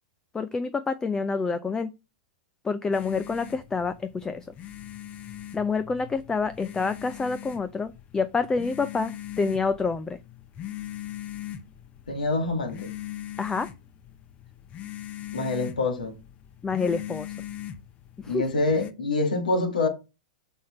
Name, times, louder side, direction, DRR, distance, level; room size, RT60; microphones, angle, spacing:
voice 1, 0.3-1.9 2.6-4.5 5.5-10.2 13.4-13.7 16.6-17.4 18.2-18.4, left 4 dB, 15° left, 0.5 m, -27 dB
sound 1, 2.9-18.9, left 12 dB, 30° left, 0.9 m, -41 dB
voice 2, 12.1-12.9 15.3-16.2 18.2-19.9, left 2 dB, 85° left, 2.0 m, -26 dB
6.4 x 5.4 x 4.3 m
hypercardioid pair, 105°, 4 cm